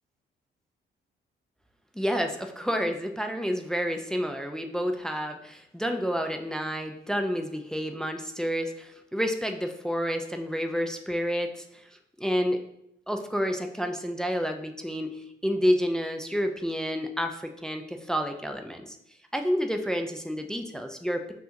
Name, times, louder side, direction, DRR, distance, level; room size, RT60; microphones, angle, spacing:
voice 1, 2.0-11.9 12.2-12.6 13.1-19.0 19.3-21.3, equal, 5° left, 5 dB, 0.4 m, -29 dB
5.6 x 2.8 x 2.6 m, 0.78 s
cardioid pair, 90°, 20 cm